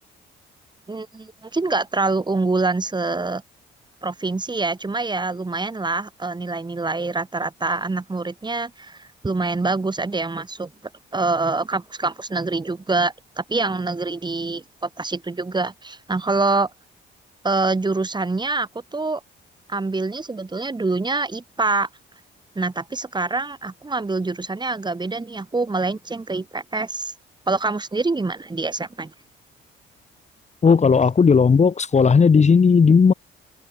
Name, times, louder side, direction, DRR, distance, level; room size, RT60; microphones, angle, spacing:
voice 1, 0.9-3.4 4.0-10.7 11.1-16.7 17.4-19.2 19.7-21.9 22.6-27.1 27.5-29.1, right 3 dB, 20° right, 5.6 m, -25 dB
voice 2, 30.6-33.1, left 5 dB, 35° left, 2.0 m, -15 dB
cardioid pair, 90°, 20 cm